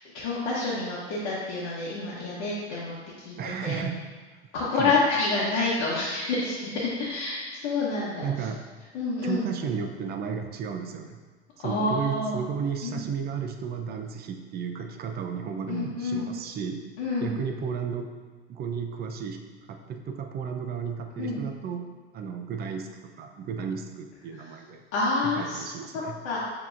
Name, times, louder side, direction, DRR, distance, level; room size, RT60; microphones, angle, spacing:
voice 1, 0.1-3.8 4.5-8.3 8.9-9.4 11.6-12.4 12.8-13.0 15.7-16.2 17.0-17.3 21.2-21.4 24.3-24.5 24.9-26.4, left 3 dB, 60° left, -7 dB, 1.0 m, -28 dB
voice 2, 3.4-4.0 4.7-4.9 8.2-8.6 9.2-11.2 11.6-16.8 17.2-18.1 18.5-19.4 19.7-21.9 22.1-24.8 25.4-26.1, right 6 dB, 30° right, 4 dB, 0.5 m, -33 dB
6.9 x 2.9 x 2.5 m, 1.4 s
hypercardioid pair, 85°, 34 cm